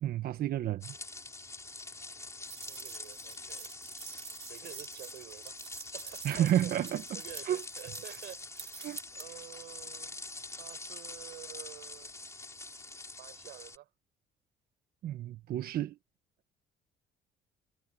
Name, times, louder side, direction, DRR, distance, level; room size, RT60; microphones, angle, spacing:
voice 1, 0.0-0.9 6.2-7.6 8.8-9.0 15.0-16.0, right 11 dB, 65° right, 1.3 m, -31 dB
sound 1, 0.8-13.8, left 3 dB, 15° left, 4.2 m, -45 dB
sound 2, 2.5-9.3, right 7 dB, 40° right, 3.3 m, -48 dB
voice 2, 2.6-3.7 4.5-6.7 7.1-8.7 9.1-10.2 10.5-12.1 13.2-13.9, right 15 dB, 80° right, 6.6 m, -50 dB
cardioid pair, 110°, 17 cm